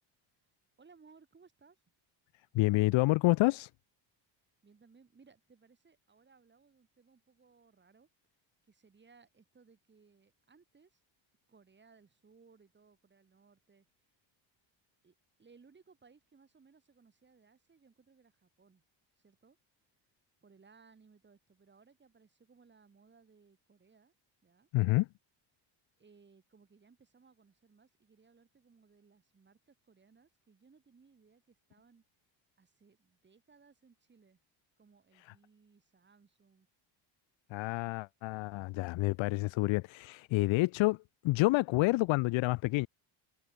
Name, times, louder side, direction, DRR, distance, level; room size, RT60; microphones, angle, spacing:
voice 1, 0.8-1.8 4.6-8.1 8.7-11.0 11.5-13.9 15.0-15.1 15.4-18.8 19.2-19.6 20.4-24.1 24.4-24.7 26.0-32.0 32.6-34.4 34.8-36.7, right 5 dB, 25° right, 6.8 m, -63 dB
voice 2, 2.5-3.7 24.7-25.1 37.5-41.0 41.2-42.9, left 21 dB, 75° left, 0.7 m, -28 dB
cardioid pair, 150°, 47 cm